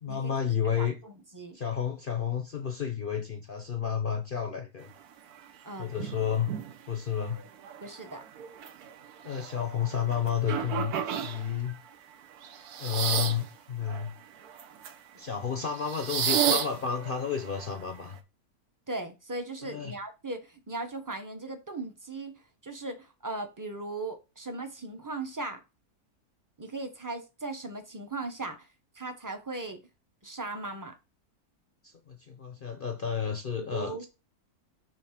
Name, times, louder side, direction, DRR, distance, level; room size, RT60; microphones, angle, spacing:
voice 1, 0.0-1.0 1.5-4.9 5.8-6.5 6.9-7.4 9.2-11.8 12.8-14.1 15.2-18.2 19.6-19.9 31.8-34.1, left 7 dB, 50° left, 0.7 m, -31 dB
voice 2, 0.8-1.6 5.6-6.1 7.8-8.2 18.9-22.3 22.6-25.6 26.6-28.7 28.9-29.8 30.2-30.9 33.6-34.1, right 2 dB, 15° right, 0.7 m, -38 dB
sound 1, 5.4-5.5 6.0-6.8 7.2-11.8 12.3-13.5 13.9-15.0 15.6-18.2, right 8 dB, 85° right, 1.3 m, -33 dB
7.4 x 2.8 x 5.8 m
omnidirectional pair, 1.6 m